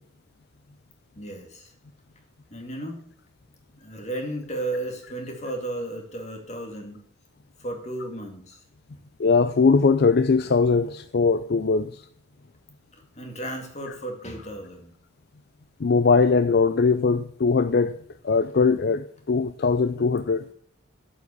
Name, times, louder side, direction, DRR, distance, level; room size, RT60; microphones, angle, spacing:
voice 1, 1.2-1.7 2.5-3.0 3.8-7.1 7.6-8.6 10.8-10.9 13.2-14.9, right 1 dB, 30° left, 2.3 m, -34 dB
voice 2, 9.2-11.9 15.8-18.0 18.2-20.4, left 4 dB, 50° left, 0.4 m, -20 dB
8.2 x 7.4 x 8.2 m
head